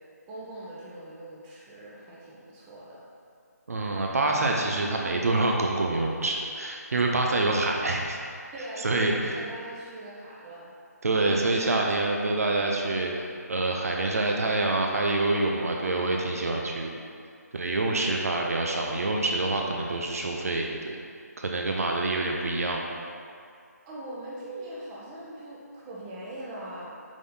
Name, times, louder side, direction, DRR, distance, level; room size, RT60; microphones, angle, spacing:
voice 1, 0.3-3.0 8.5-10.7 23.9-26.9, right 1 dB, 15° right, -6 dB, 1.1 m, -41 dB
voice 2, 3.7-8.2 8.8-9.4 11.0-17.0 17.5-21.0 21.4-23.0, right 2 dB, 60° right, 0 dB, 0.9 m, -26 dB
9.2 x 4.4 x 4.0 m, 2.3 s
figure-of-eight pair, 155°, 9 cm